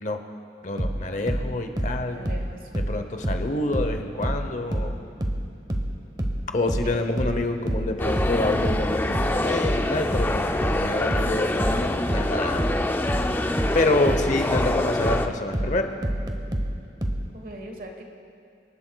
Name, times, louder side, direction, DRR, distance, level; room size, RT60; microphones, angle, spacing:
voice 1, 0.6-2.2 2.7-5.0 6.5-12.7 13.7-15.9, left 2 dB, 40° left, 6 dB, 0.8 m, -27 dB
sound 1, 0.8-4.0 4.2-17.3, right 1 dB, 20° right, 0.9 m, -27 dB
voice 2, 2.1-2.7 6.6-7.2 17.3-18.0, right 1 dB, 50° right, 3 dB, 1.3 m, -40 dB
sound 2, 8.0-15.3, left 1 dB, 10° left, 0.3 m, -26 dB
25.5 x 12.0 x 2.3 m, 2.4 s
head